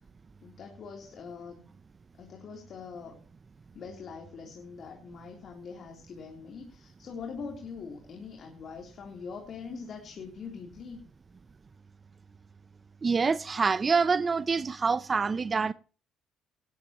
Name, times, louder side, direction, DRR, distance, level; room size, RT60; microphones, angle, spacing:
voice 1, 0.4-1.6 2.2-3.2 3.7-11.0, left 5 dB, 55° left, 3.4 m, -43 dB
voice 2, 13.0-15.7, right 5 dB, 35° right, 0.6 m, -26 dB
18.0 x 13.0 x 3.0 m
supercardioid pair, 75°, 0 cm